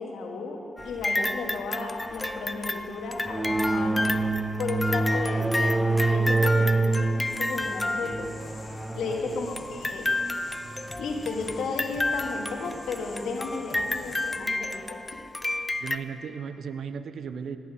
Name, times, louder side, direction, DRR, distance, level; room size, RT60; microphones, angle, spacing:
voice 1, 0.0-4.2 4.6-7.1 7.4-8.3 8.9-10.1 11.0-15.0, left 3 dB, 80° left, 1 dB, 1.4 m, -34 dB
sound 1, 0.8-8.7 9.6-16.0, left 2 dB, 20° left, 0.5 m, -31 dB
sound 2, 3.2-11.4, right 2 dB, 25° right, 0.7 m, -27 dB
sound 3, 7.3-14.4, left 3 dB, 55° left, 1.3 m, -47 dB
voice 2, 9.0-9.5 15.8-17.6, right 6 dB, 70° right, 11 dB, 0.5 m, -36 dB
16.5 x 6.0 x 6.2 m, 2.6 s
supercardioid pair, 50°, 0 cm